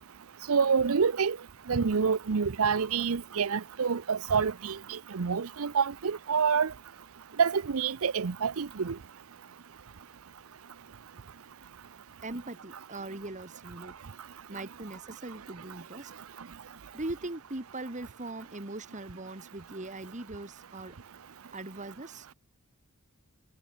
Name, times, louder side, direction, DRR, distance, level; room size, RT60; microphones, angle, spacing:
voice 1, 0.5-1.4 1.7-6.7 7.4-9.0, right 6 dB, 75° right, 0.6 m, -27 dB
voice 2, 12.2-13.9 14.5-16.1 16.9-21.0 21.5-22.3, right 2 dB, 35° right, 2.0 m, -40 dB
head